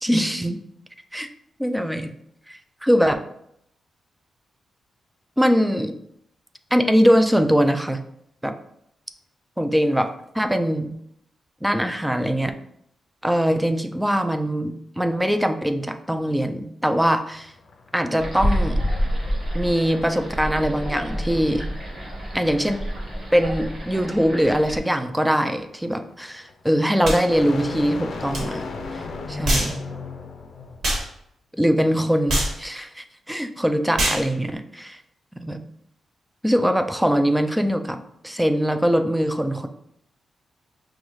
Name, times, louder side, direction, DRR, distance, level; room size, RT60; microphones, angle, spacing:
voice 1, 0.0-0.6 1.1-1.3 1.6-2.1 2.8-3.2 5.4-6.0 6.7-8.0 8.4-8.5 9.6-10.9 11.6-12.5 13.2-17.5 17.9-18.8 19.5-21.7 22.3-22.8 23.3-28.7 28.9-29.0 29.3-29.7 31.5-35.0 35.4-35.6 36.4-38.0 38.2-39.7, equal, 5° right, 7 dB, 0.3 m, -22 dB
sound 1, 17.3-30.8, left 3 dB, 60° left, 0.5 m, -37 dB
sound 2, 18.2-24.8, equal, 40° right, 1.3 m, -28 dB
sound 3, 27.0-27.2 28.3-28.4 29.4-29.8 30.8-31.1 32.3-32.6 34.0-34.3, right 1 dB, 65° right, 1.3 m, -23 dB
5.2 x 2.3 x 3.1 m, 0.74 s
wide cardioid pair, 125°, 0 cm